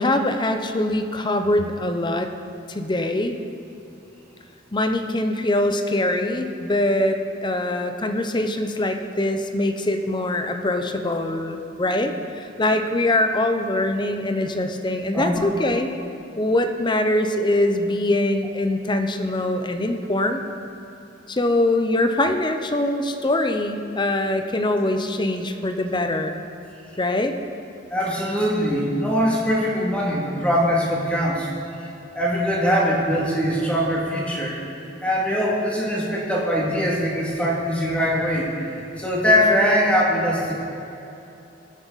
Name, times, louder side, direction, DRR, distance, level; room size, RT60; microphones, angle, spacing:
voice 1, 0.0-2.3 2.7-3.4 4.7-15.9 16.4-20.4 21.3-26.4 27.0-27.4, left 1 dB, 25° left, 6 dB, 0.7 m, -23 dB
voice 2, 15.1-15.4 27.9-31.5 32.1-34.6 35.0-40.5, equal, 5° left, -5 dB, 2.5 m, -22 dB
22.0 x 7.7 x 4.1 m, 2.9 s
head